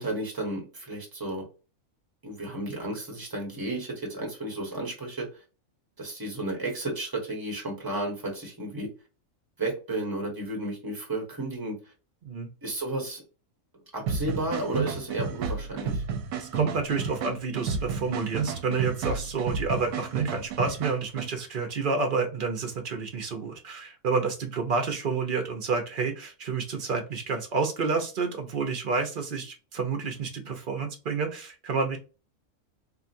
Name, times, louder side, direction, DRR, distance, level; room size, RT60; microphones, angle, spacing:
voice 1, 0.0-1.4 2.2-5.3 6.0-8.9 9.6-11.8 12.6-13.2 13.9-16.0, right 1 dB, 15° right, 0 dB, 1.2 m, -33 dB
sound 1, 14.1-21.3, right 5 dB, 70° right, 1.1 m, -31 dB
voice 2, 16.3-32.0, right 4 dB, 45° right, 4 dB, 0.8 m, -29 dB
3.8 x 2.4 x 2.6 m, 0.33 s
omnidirectional pair, 1.6 m